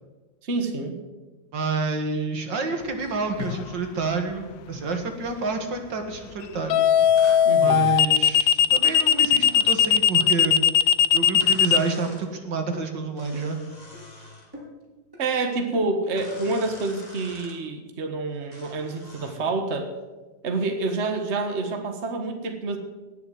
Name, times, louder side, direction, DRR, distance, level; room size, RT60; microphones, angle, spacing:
voice 1, 0.4-1.0 7.4-7.9 15.2-19.9 20.4-22.8, right 3 dB, 40° right, 5 dB, 1.7 m, -28 dB
voice 2, 1.5-6.9 7.6-10.6 11.1-13.6, right 4 dB, 70° right, 5 dB, 2.4 m, -28 dB
sound 1, 3.4-3.7 6.7-11.8, left 9 dB, 75° left, 1.4 m, -18 dB
sound 2, 7.2-7.5 8.9-10.1 11.4-12.3 13.2-14.5 16.2-17.6 18.5-19.4, left 1 dB, 20° left, 2.8 m, -46 dB
sound 3, 12.1-12.3 12.7-12.9 13.3-13.6 13.9-14.1 14.5-14.8 15.1-15.3 15.7-16.0 16.3-16.5, left 1 dB, 10° right, 4.3 m, -44 dB
18.5 x 7.0 x 7.7 m, 1.2 s
omnidirectional pair, 2.1 m